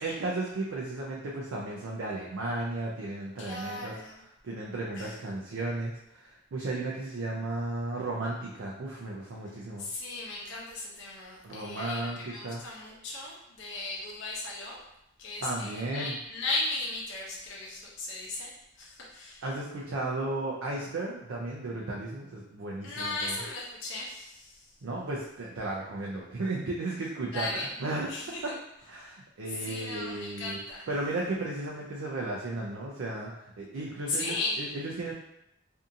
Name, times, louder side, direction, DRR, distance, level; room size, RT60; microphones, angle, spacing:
voice 1, 0.0-3.9 4.4-9.9 11.4-12.6 15.4-16.1 19.4-23.4 24.8-28.1 28.4-28.5 28.9-30.6 30.9-35.1, right 2 dB, 80° right, -3 dB, 0.4 m, -34 dB
voice 2, 3.4-4.2 5.0-5.2 9.8-14.8 15.2-18.5 18.8-19.4 22.8-24.7 27.3-27.8 28.1-28.5 29.5-30.9 34.1-34.6, left 2 dB, 65° left, -3 dB, 0.7 m, -36 dB
2.6 x 2.4 x 2.6 m, 0.80 s
head